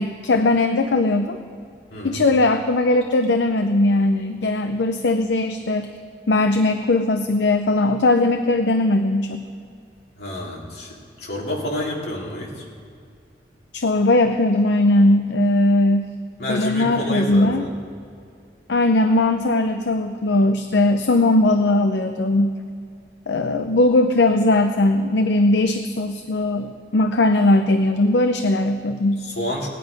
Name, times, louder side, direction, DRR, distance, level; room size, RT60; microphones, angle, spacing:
voice 1, 0.0-1.4 2.0-5.9 6.3-9.4 13.7-16.0 16.5-17.6 18.7-22.5 23.3-29.2, left 2 dB, 80° left, 7 dB, 0.6 m, -19 dB
voice 2, 10.2-12.7 16.4-17.8 29.2-29.7, equal, 65° left, -3 dB, 2.6 m, -29 dB
17.5 x 10.0 x 5.2 m, 2.3 s
head